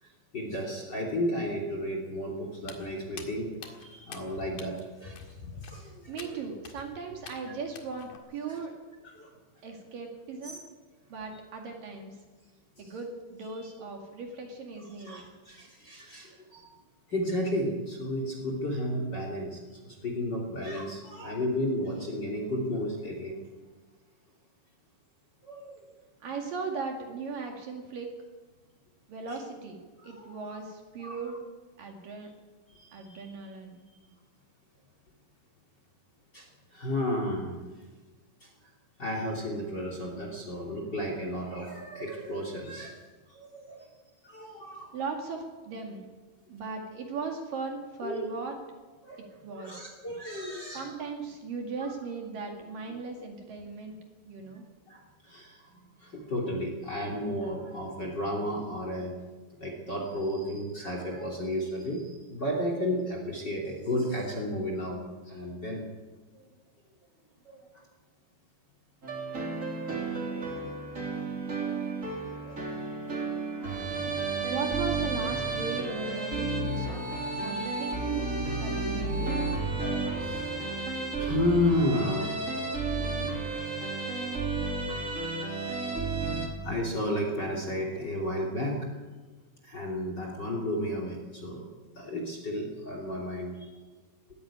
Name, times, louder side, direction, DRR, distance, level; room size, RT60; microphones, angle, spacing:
voice 1, 0.0-5.2 5.6-6.3 8.5-8.6 9.0-9.3 10.4-10.6 12.8-12.9 13.5-13.7 15.0-16.7 17.1-23.4 25.4-25.8 30.0-30.6 31.0-31.3 32.7-33.2 33.9-34.0 36.3-37.6 38.4-38.5 39.0-43.0 43.3-43.9 44.2-44.9 48.0-48.3 49.0-49.2 49.5-50.9 51.8-51.9 52.9-53.0 54.5-54.6 54.9-59.1 59.6-65.8 66.3-66.4 67.4-67.8 72.4-72.6 73.3-74.8 77.5-77.7 79.8-80.5 81.2-82.3 86.6-88.9 89.6-93.7, left 1 dB, 30° left, 1 dB, 2.9 m, -33 dB
Walk footsteps, 2.6-8.2, left 5 dB, 55° left, 3.2 m, -47 dB
voice 2, 6.1-8.7 9.6-10.7 11.1-12.2 12.8-15.3 26.2-28.1 29.1-31.4 31.8-32.3 32.9-33.9 44.9-46.1 46.5-48.6 49.4-49.9 50.7-54.0 54.3-54.6 74.5-77.1 77.4-78.3 78.6-79.5, right 4 dB, 55° right, 2 dB, 3.4 m, -38 dB
sound 1, 69.0-86.5, right 3 dB, 20° right, 2.7 m, -32 dB
20.0 x 15.5 x 8.7 m, 1.4 s
omnidirectional pair, 5.1 m